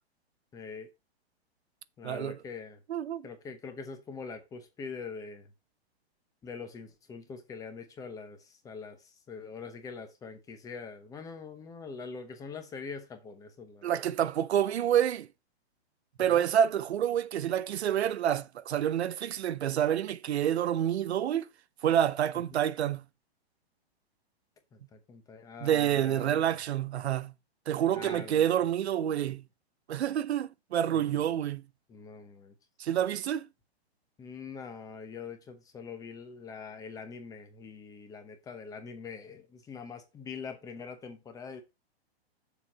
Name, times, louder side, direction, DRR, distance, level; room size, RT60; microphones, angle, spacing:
voice 1, 0.5-0.9 2.0-2.8 3.2-5.5 6.4-14.0 16.3-16.4 22.5-22.6 24.7-26.5 27.9-28.5 30.9-31.3 31.9-32.5 34.2-41.6, left 5 dB, 10° left, 0.9 m, -43 dB
voice 2, 2.0-2.4 2.9-3.3 13.8-15.3 16.2-21.5 21.8-23.0 25.6-27.3 27.7-29.4 29.9-31.6 32.8-33.5, right 10 dB, 80° right, 0.7 m, -28 dB
7.0 x 4.6 x 5.5 m
hypercardioid pair, 155°, 32 cm